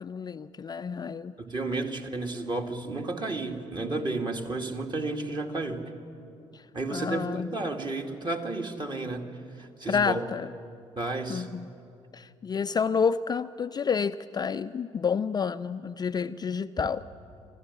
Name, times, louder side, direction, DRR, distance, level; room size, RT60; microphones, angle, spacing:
voice 1, 0.0-1.3 6.5-6.6 6.9-7.5 9.9-10.5 11.3-11.7 12.1-17.0, left 6 dB, 25° left, 11 dB, 0.5 m, -29 dB
voice 2, 1.4-5.8 6.7-9.3 9.6-10.3 11.0-11.5, right 2 dB, 30° right, 3 dB, 2.3 m, -32 dB
26.0 x 15.5 x 9.9 m, 2.5 s
figure-of-eight pair, 45°, 15 cm